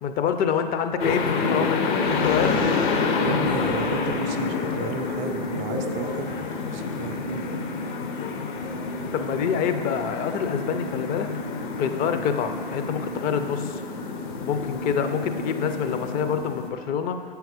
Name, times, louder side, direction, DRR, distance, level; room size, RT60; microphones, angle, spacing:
voice 1, 0.0-2.7 9.1-11.3 11.8-13.8 14.4-17.2, left 7 dB, 30° left, 8 dB, 0.5 m, -26 dB
sound 1, 1.0-16.7, left 4 dB, 55° left, 0.8 m, -28 dB
voice 2, 3.2-7.4, right 7 dB, 25° right, 7 dB, 0.4 m, -34 dB
7.7 x 4.7 x 5.0 m, 2.1 s
figure-of-eight pair, 100°, 30 cm